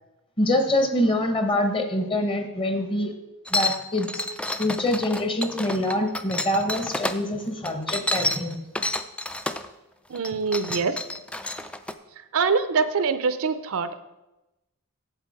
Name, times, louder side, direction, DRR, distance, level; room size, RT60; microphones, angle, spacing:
voice 1, 0.4-3.1 3.5-4.3 4.6-8.6, left 1 dB, 25° left, 6 dB, 1.0 m, -25 dB
sound 1, 3.5-7.2 7.6-9.7 10.1-11.9, left 1 dB, 5° left, 0.3 m, -29 dB
voice 2, 10.1-11.0 12.3-14.0, right 5 dB, 65° right, 12 dB, 0.5 m, -24 dB
8.2 x 7.5 x 4.8 m, 0.98 s
head